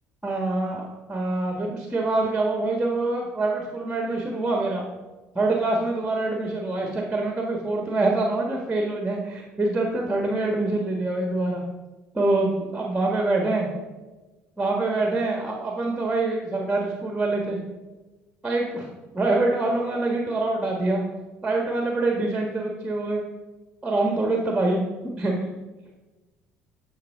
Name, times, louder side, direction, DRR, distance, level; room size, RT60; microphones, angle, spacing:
voice 1, 0.2-4.9 5.3-11.6 12.1-13.7 14.6-17.6 18.4-18.9 19.1-21.0 21.4-23.2 23.8-24.8 25.2-25.3, right 2 dB, 15° right, 0 dB, 1.5 m, -25 dB
12.0 x 5.5 x 3.6 m, 1.2 s
hypercardioid pair, 65°, 6 cm